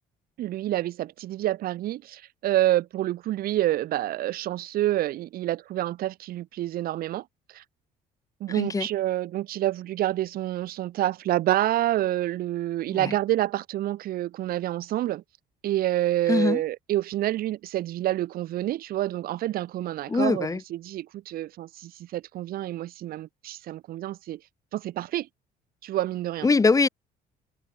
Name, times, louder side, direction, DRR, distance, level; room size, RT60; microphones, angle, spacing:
voice 1, 0.4-7.2 7.5-7.6 8.4-15.2 15.6-24.4 24.7-25.3 25.8-26.5, right 14 dB, 60° right, 0.6 m, -28 dB
voice 2, 8.5-8.9 12.9-13.1 16.3-16.6 20.1-20.6 26.4-26.9, left 4 dB, 20° left, 1.0 m, -22 dB
cardioid pair, 110°, 17 cm